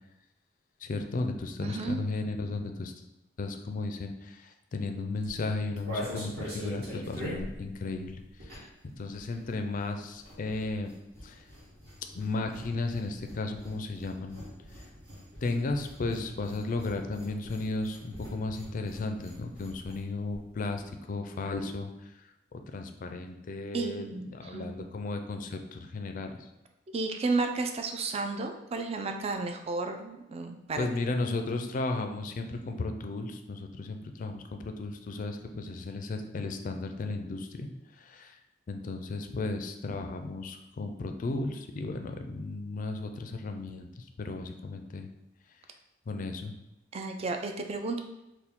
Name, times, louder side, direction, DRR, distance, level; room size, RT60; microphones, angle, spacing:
voice 1, 0.8-2.9 3.4-8.2 8.6-8.7 9.0-10.9 11.2-11.4 12.1-14.4 15.4-20.8 21.1-21.9 22.7-26.4 30.8-37.7 38.0-38.4 38.7-45.1 46.1-46.5, left 3 dB, 45° left, 6 dB, 0.4 m, -34 dB
voice 2, 1.6-2.0 23.7-24.8 26.9-30.9 39.3-39.4 46.9-48.0, right 3 dB, 35° right, 5 dB, 0.3 m, -32 dB
sound 1, 5.1-8.9 9.1-20.0 20.3-20.4 20.6-20.9, equal, 55° right, 1.4 m, -43 dB
4.4 x 2.1 x 3.6 m, 0.93 s
head